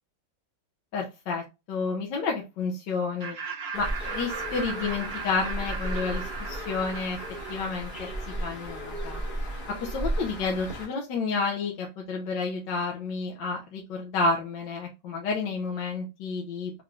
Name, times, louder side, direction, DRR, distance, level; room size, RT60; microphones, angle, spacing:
voice 1, 0.9-3.4 3.7-7.2 7.5-8.1 8.4-9.2 9.7-16.7, left 4 dB, 75° left, 0 dB, 1.4 m, -30 dB
Laughter, 3.2-8.5, right 5 dB, 50° right, 0.8 m, -38 dB
Bird, 3.7-10.9, right 1 dB, 30° left, 1.2 m, -35 dB
3.7 x 3.3 x 2.4 m, 0.25 s
omnidirectional pair, 2.0 m